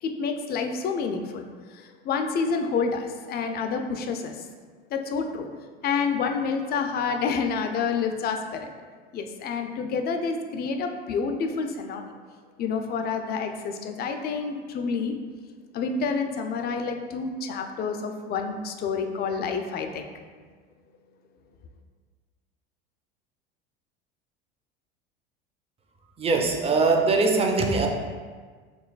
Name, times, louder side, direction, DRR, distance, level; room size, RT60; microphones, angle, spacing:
voice 1, 0.0-4.5 4.9-5.5 5.8-8.7 9.1-12.1 12.6-15.1 15.7-20.1, left 5 dB, 35° left, 5 dB, 0.4 m, -28 dB
voice 2, 26.2-27.9, right 3 dB, 20° right, 2 dB, 0.5 m, -22 dB
4.5 x 3.1 x 2.4 m, 1.5 s
hypercardioid pair, 80°, 30 cm